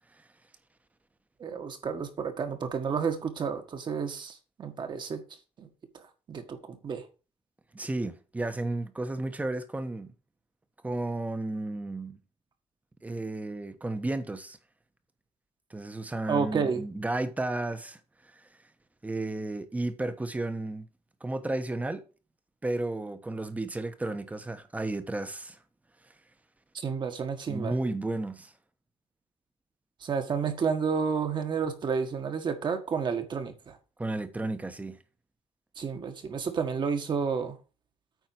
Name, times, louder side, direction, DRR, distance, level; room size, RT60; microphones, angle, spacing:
voice 1, 1.4-5.2 5.6-5.7 5.9-6.0 6.3-7.0 16.3-16.8 26.7-27.7 30.0-33.8 35.8-37.6, right 6 dB, 45° right, 1.6 m, -31 dB
voice 2, 7.7-10.1 10.8-12.2 13.0-14.6 15.7-18.0 18.3-18.5 19.0-20.9 21.2-22.0 22.6-25.6 27.5-28.5 34.0-35.0, right 2 dB, 15° right, 1.0 m, -33 dB
9.2 x 4.4 x 6.1 m
cardioid pair, 130°, 11 cm